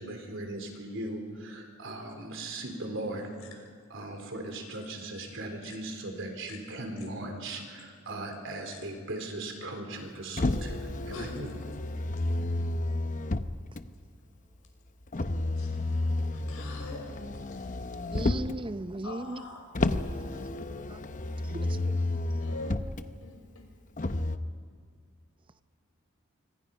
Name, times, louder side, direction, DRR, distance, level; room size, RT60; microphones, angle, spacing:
voice 1, 0.0-3.3 3.9-11.5, right 2 dB, 60° right, 4 dB, 4.0 m, -38 dB
Motor vehicle (road), 10.4-13.8 15.1-18.6 19.7-23.0 24.0-24.4, left 2 dB, 35° left, 0.8 m, -31 dB
voice 2, 15.5-17.1 19.0-19.7 22.4-22.8 23.2-23.7, left 3 dB, 85° left, 2 dB, 5.9 m, -44 dB
voice 3, 18.1-19.4 20.9-21.0 21.5-22.0, right 1 dB, 25° right, 12 dB, 0.6 m, -36 dB
26.0 x 25.5 x 5.5 m, 2.2 s
head